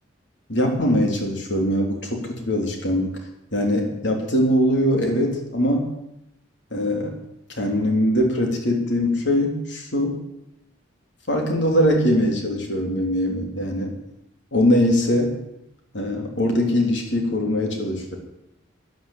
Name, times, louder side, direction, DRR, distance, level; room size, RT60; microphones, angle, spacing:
voice 1, 0.5-3.1 3.5-5.9 6.7-7.1 7.6-10.2 11.3-13.9 14.5-15.4 15.9-18.2, equal, 70° left, 2 dB, 3.3 m, -22 dB
12.0 x 10.5 x 8.6 m, 0.83 s
head